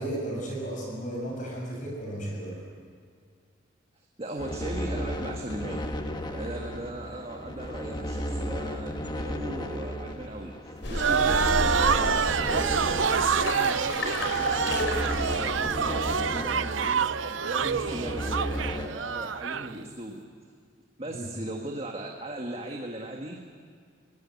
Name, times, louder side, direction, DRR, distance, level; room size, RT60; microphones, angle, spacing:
voice 1, 0.0-2.7 21.1-21.3, right 1 dB, 45° left, -1 dB, 6.9 m, -34 dB
voice 2, 3.9-5.8 6.2-17.1 17.4-18.4 18.7-20.2 21.0-23.5, right 1 dB, 30° right, 1 dB, 1.7 m, -38 dB
sound 1, 4.4-18.9, equal, 25° left, 1.4 m, -34 dB
sound 2, 10.8-16.1, left 1 dB, 75° left, 5.0 m, -33 dB
sound 3, 10.9-19.7, right 6 dB, 85° right, 0.6 m, -27 dB
22.5 x 18.0 x 9.6 m, 2.2 s
head